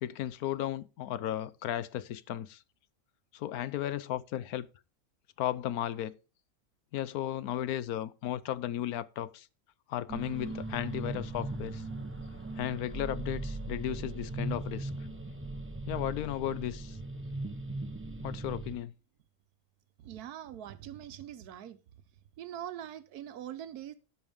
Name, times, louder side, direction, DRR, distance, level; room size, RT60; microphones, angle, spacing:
voice 1, 0.0-2.6 3.3-4.7 5.4-6.1 6.9-9.5 9.9-11.8 12.6-14.9 15.9-17.0 18.2-18.9, left 12 dB, 80° left, 1.1 m, -35 dB
sound 1, 10.1-18.7, right 2 dB, 10° right, 0.8 m, -38 dB
voice 2, 20.0-21.8 22.4-23.9, right 11 dB, 90° right, 1.3 m, -43 dB
16.0 x 5.5 x 3.5 m
omnidirectional pair, 1.6 m